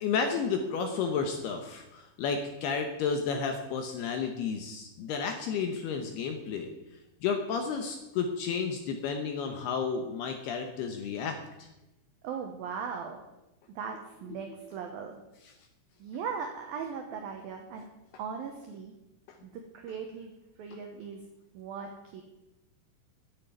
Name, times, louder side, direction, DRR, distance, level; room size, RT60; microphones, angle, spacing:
voice 1, 0.0-6.7 7.2-11.4, left 5 dB, 75° left, 5 dB, 2.5 m, -32 dB
voice 2, 12.2-13.2 13.7-15.2 16.0-17.9 18.2-18.9 19.4-21.2 21.5-22.2, right 6 dB, 80° right, 4 dB, 2.1 m, -39 dB
10.5 x 7.5 x 9.4 m, 0.97 s
omnidirectional pair, 5.7 m